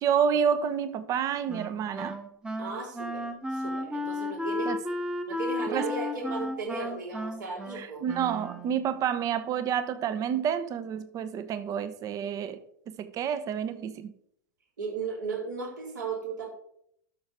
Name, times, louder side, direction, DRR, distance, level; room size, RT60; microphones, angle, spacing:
voice 1, 0.0-2.2 4.7-4.8 5.7-5.8 7.8-12.6 13.0-14.1, right 8 dB, 35° right, 0.9 m, -29 dB
Wind instrument woodwind instrument, 1.5-8.9, left 1 dB, 10° right, 1.1 m, -34 dB
voice 2, 2.6-3.2 3.5-4.7 5.3-8.0 14.8-16.5, right 4 dB, 75° right, 4.2 m, -35 dB
12.0 x 6.5 x 3.7 m
figure-of-eight pair, 95°, 10 cm